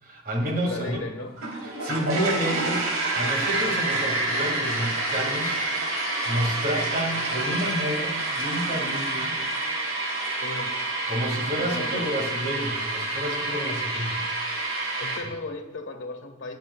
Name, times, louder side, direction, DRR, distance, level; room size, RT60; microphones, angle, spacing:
voice 1, 0.0-1.0 1.6-2.9 3.1-9.4 11.1-14.2, equal, 45° right, 2 dB, 2.3 m, -30 dB
voice 2, 0.6-1.4 10.4-10.8 11.6-12.1 15.0-16.6, left 2 dB, 65° left, 4 dB, 1.5 m, -35 dB
sound 1, 1.4-15.2, right 2 dB, 90° right, 3.5 m, -28 dB
21.5 x 9.3 x 2.4 m, 1.0 s
head